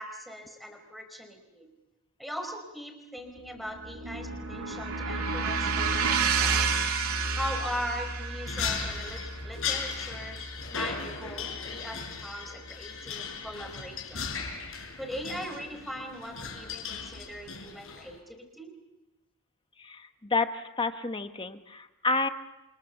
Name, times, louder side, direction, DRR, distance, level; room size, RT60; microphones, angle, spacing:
voice 1, 0.0-1.7 2.2-6.7 7.3-10.4 10.7-14.2 15.0-18.7, equal, ahead, 4 dB, 4.7 m, -40 dB
sound 1, 3.4-11.7, right 5 dB, 80° right, 2.8 m, -31 dB
sound 2, 8.5-18.2, left 6 dB, 65° left, 6.0 m, -37 dB
voice 2, 19.8-22.3, left 3 dB, 25° left, 8 dB, 1.1 m, -30 dB
29.5 x 26.0 x 7.2 m, 0.97 s
head